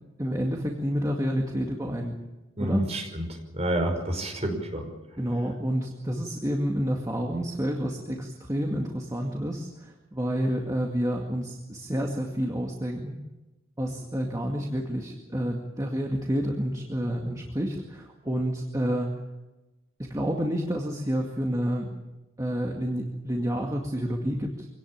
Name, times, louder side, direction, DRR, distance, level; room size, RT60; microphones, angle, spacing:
voice 1, 0.2-2.2 2.6-2.9 5.2-13.2 13.8-19.2 20.0-21.9 22.4-24.7, equal, 15° right, 1 dB, 2.1 m, -29 dB
voice 2, 2.6-3.2 3.5-4.9, right 1 dB, 30° right, 3 dB, 5.4 m, -29 dB
25.0 x 18.0 x 8.9 m, 1.1 s
head